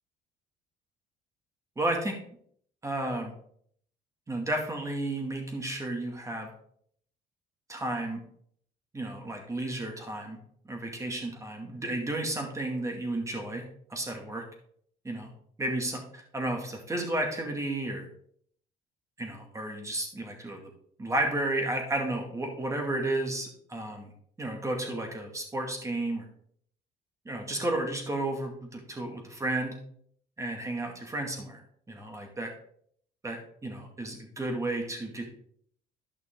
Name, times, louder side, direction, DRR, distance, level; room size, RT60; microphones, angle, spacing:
voice 1, 1.8-2.2 2.8-3.3 4.3-6.5 7.7-8.2 8.9-10.4 10.6-14.4 15.0-15.3 15.6-18.1 19.2-20.6 21.0-24.1 24.4-26.3 27.3-29.8 30.4-31.6 31.9-32.5 33.2-35.3, right 1 dB, 20° right, 2 dB, 2.3 m, -32 dB
12.0 x 5.9 x 3.8 m, 0.63 s
cardioid pair, 110°, 17 cm